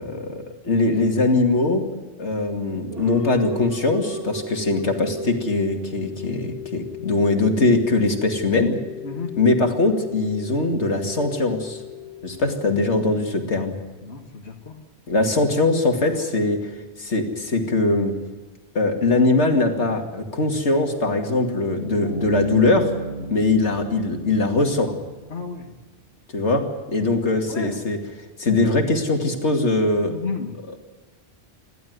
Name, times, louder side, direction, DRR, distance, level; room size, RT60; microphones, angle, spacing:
voice 1, 0.0-1.8 2.2-8.8 9.4-11.8 12.2-13.8 15.1-16.7 17.0-18.1 18.7-22.9 23.3-24.9 26.3-28.0 28.4-30.1 30.7-30.8, left 2 dB, 90° left, 4 dB, 2.7 m, -21 dB
sound 1, 2.9-13.6, left 3 dB, 60° right, 2.7 m, -36 dB
voice 2, 14.0-14.7 24.6-24.7 25.3-25.7 27.5-27.9 30.1-30.5, left 4 dB, 70° left, 1 dB, 2.2 m, -33 dB
Bass guitar, 22.0-25.5, right 3 dB, 80° right, 7.2 m, -34 dB
29.0 x 12.0 x 9.5 m, 1.3 s
omnidirectional pair, 1.1 m